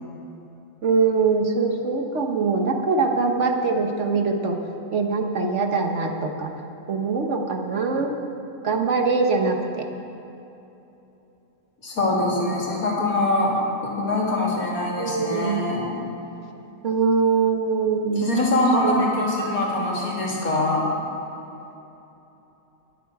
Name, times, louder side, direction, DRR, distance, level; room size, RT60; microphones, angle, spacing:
voice 1, 0.8-4.6 4.9-6.5 6.9-8.2 8.6-9.9 12.4-12.5 15.0-15.6 16.8-18.3 18.8-19.1, right 4 dB, 55° right, 3 dB, 1.3 m, -23 dB
voice 2, 11.8-13.5 13.8-15.9 18.2-20.9, left 2 dB, 75° left, -3 dB, 3.0 m, -23 dB
22.0 x 8.2 x 4.8 m, 3.0 s
omnidirectional pair, 1.5 m